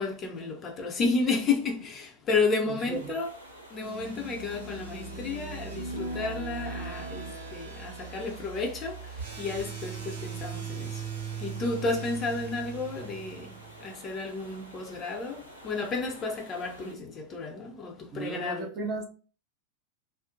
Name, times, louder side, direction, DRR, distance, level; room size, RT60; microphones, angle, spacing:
voice 1, 0.0-3.3 3.7-11.1 11.4-18.7, left 4 dB, 25° left, 0.5 m, -32 dB
voice 2, 2.7-3.2 18.1-19.0, right 4 dB, 35° right, 0.5 m, -35 dB
sound 1, 2.9-16.9, right 1 dB, 85° left, 0.7 m, -50 dB
sound 2, 3.8-13.9, right 5 dB, 80° right, 0.8 m, -39 dB
2.5 x 2.0 x 2.5 m
figure-of-eight pair, 90°, 0 cm